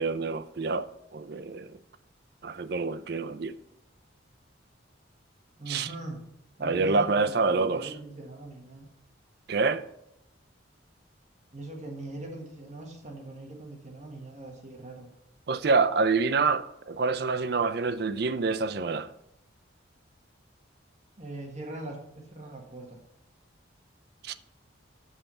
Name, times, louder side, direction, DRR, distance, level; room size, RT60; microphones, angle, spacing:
voice 1, 0.0-1.7 2.4-3.5 5.7-5.9 6.6-7.9 9.5-9.8 15.5-19.1 24.2-24.3, right 4 dB, 55° right, 0.4 m, -27 dB
voice 2, 5.6-6.2 6.6-8.8 11.5-15.1 21.2-23.0, right 2 dB, 35° right, 1.4 m, -41 dB
7.1 x 5.6 x 6.7 m
head